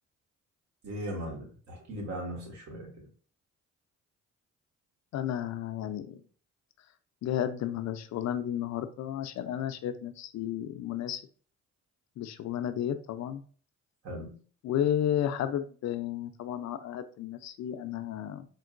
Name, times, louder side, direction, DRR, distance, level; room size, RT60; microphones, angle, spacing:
voice 1, 0.8-3.1 14.0-14.4, equal, 70° right, -1 dB, 1.5 m, -38 dB
voice 2, 5.1-6.2 7.2-11.2 12.2-13.4 14.6-18.5, left 10 dB, 60° left, 10 dB, 0.4 m, -32 dB
4.5 x 2.1 x 2.4 m, 0.42 s
cardioid pair, 90°, 30 cm